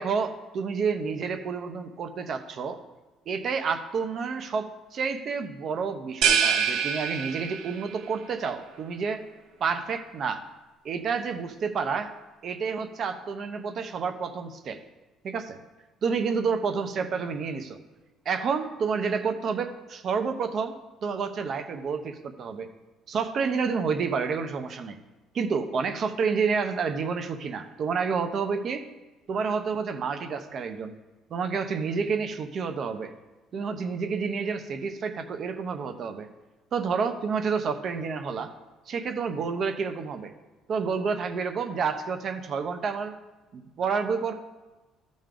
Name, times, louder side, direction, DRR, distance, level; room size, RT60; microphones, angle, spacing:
voice 1, 0.0-2.8 3.3-9.2 9.6-10.4 10.8-12.1 12.4-14.8 15.2-15.6 16.0-17.8 18.2-20.7 21.0-22.7 23.1-25.0 25.3-28.8 29.3-30.9 31.3-33.1 33.5-36.3 36.7-38.5 38.9-40.3 40.7-43.1 43.5-44.3, right 5 dB, 45° right, 7 dB, 0.9 m, -29 dB
sound 1, 6.2-7.9, right 7 dB, 75° right, 1.0 m, -25 dB
14.0 x 5.3 x 3.8 m, 1.2 s
cardioid pair, 140°, 0 cm